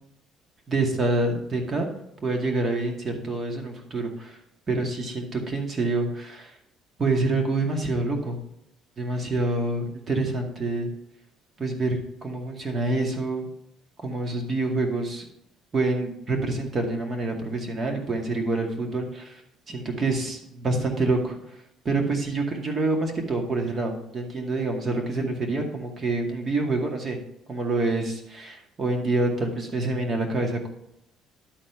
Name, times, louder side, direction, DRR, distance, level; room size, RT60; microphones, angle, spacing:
voice 1, 0.7-1.9 2.2-4.4 4.7-6.6 7.0-8.4 9.0-10.9 11.6-13.5 14.0-15.2 15.7-19.4 19.7-21.6 21.8-27.2 27.5-30.7, right 2 dB, 35° right, 3 dB, 2.1 m, -27 dB
11.5 x 4.3 x 5.6 m, 0.78 s
cardioid pair, 120°, 0 cm